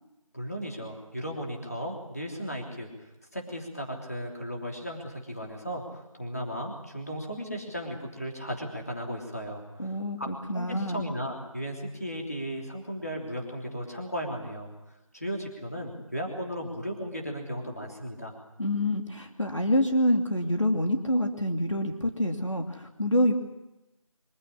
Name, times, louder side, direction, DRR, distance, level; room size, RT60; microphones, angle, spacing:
voice 1, 0.3-2.9 3.3-9.9 10.2-10.3 10.5-14.7 15.1-18.3, equal, 25° left, 0 dB, 3.2 m, -35 dB
voice 2, 9.8-11.0 18.6-23.3, left 1 dB, 60° left, 3 dB, 2.6 m, -27 dB
24.5 x 15.5 x 9.9 m, 0.98 s
figure-of-eight pair, 180°, 18 cm